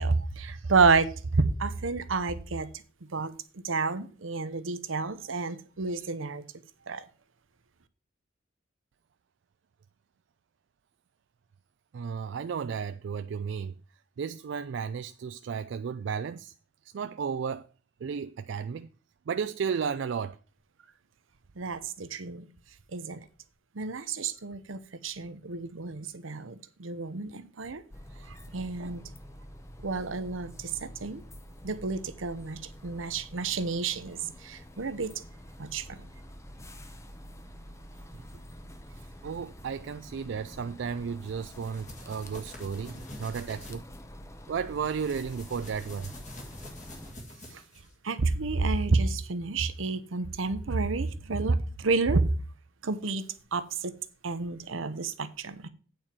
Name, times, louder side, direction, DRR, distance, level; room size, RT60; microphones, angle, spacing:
voice 1, 0.0-2.7 3.1-3.3 3.6-6.4 6.9-7.0 21.6-22.5 22.9-23.2 23.7-27.8 28.3-29.0 29.8-31.2 31.6-35.1 35.6-36.0 47.5-47.6 48.0-52.2 52.8-53.2 53.5-53.9 54.2-55.7, right 4 dB, 80° right, 0.8 m, -30 dB
voice 2, 11.9-13.7 14.2-16.5 16.9-17.7 18.0-18.9 19.3-20.4 39.2-43.8 44.5-46.1, right 6 dB, 60° right, 0.3 m, -33 dB
sound 1, 27.9-47.1, equal, 15° left, 0.7 m, -47 dB
sound 2, 41.2-43.8 44.7-47.9, left 1 dB, 40° left, 2.0 m, -47 dB
8.8 x 4.5 x 7.3 m
head